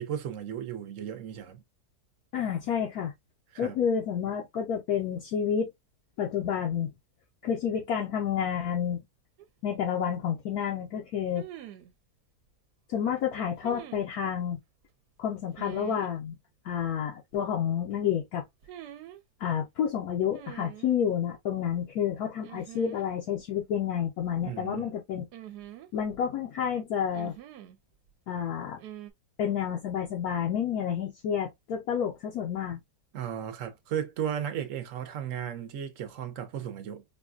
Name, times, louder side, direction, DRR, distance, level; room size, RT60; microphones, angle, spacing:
voice 1, 0.0-1.6 3.5-3.8 24.4-24.9 33.1-37.0, right 9 dB, 60° right, 1.0 m, -35 dB
voice 2, 2.3-3.1 3.6-5.7 6.2-6.9 7.4-9.0 9.6-11.5 12.9-14.6 15.2-16.4 16.6-18.4 19.4-25.3 25.9-27.4 28.3-28.8 29.4-32.8, left 8 dB, 70° left, 1.1 m, -29 dB
sound 1, 9.4-9.5 11.3-11.9 13.6-14.1 15.6-16.1 18.6-19.2 20.3-21.0 22.4-23.1 23.3-23.4 25.3-26.2 27.1-27.8 28.8-29.1, right 12 dB, 80° right, 1.1 m, -45 dB
4.7 x 2.2 x 2.3 m
omnidirectional pair, 1.7 m